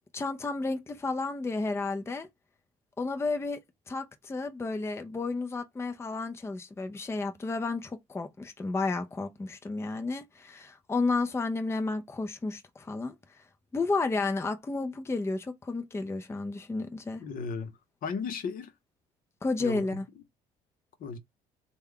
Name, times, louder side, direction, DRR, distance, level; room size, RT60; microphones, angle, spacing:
voice 1, 0.1-2.3 3.0-3.6 3.9-13.4 13.7-17.2 19.4-20.1, left 3 dB, 15° left, 0.5 m, -32 dB
voice 2, 17.2-18.7 19.6-19.8 21.0-21.2, left 5 dB, 60° left, 0.8 m, -35 dB
3.3 x 2.3 x 3.6 m
supercardioid pair, 85°, 17 cm